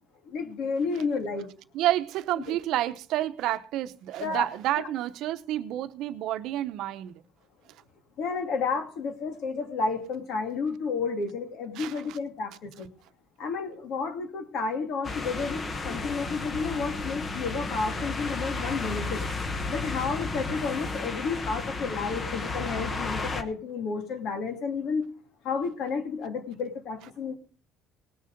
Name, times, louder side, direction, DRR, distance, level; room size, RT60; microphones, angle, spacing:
voice 1, 0.3-1.5 2.5-2.6 4.2-4.5 8.2-12.9 13.4-19.2 19.7-25.0 25.4-27.3, left 4 dB, 60° left, 2.3 m, -31 dB
voice 2, 1.7-7.2 11.7-12.2 19.3-19.4 19.9-20.1, right 14 dB, 65° right, 0.9 m, -30 dB
sound 1, 15.0-23.4, left 3 dB, 25° left, 1.0 m, -33 dB
19.5 x 6.7 x 5.2 m
cardioid pair, 150°, 0 cm